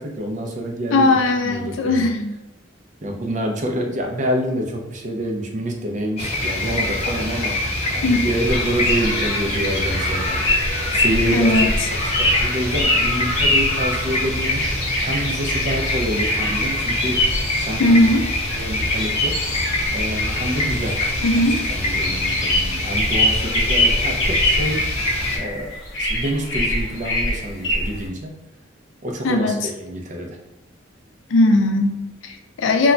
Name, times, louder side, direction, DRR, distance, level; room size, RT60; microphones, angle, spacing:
voice 1, 0.0-2.1 3.0-7.6 7.9-10.6 10.9-14.6 15.0-17.3 17.6-18.1 18.5-19.4 19.9-21.0 21.3-24.9 25.3-25.7 26.0-28.3 29.0-30.4, right 1 dB, 40° right, 1 dB, 0.4 m, -27 dB
voice 2, 0.9-2.3 8.0-8.2 11.3-11.7 17.8-18.2 21.2-21.6 29.2-29.6 31.3-32.9, left 2 dB, 85° left, 4 dB, 0.4 m, -18 dB
sound 1, 6.2-25.4, left 1 dB, 35° left, 0.6 m, -24 dB
sound 2, 8.5-28.1, left 1 dB, 65° left, 0.8 m, -24 dB
2.2 x 2.1 x 3.7 m, 0.97 s
head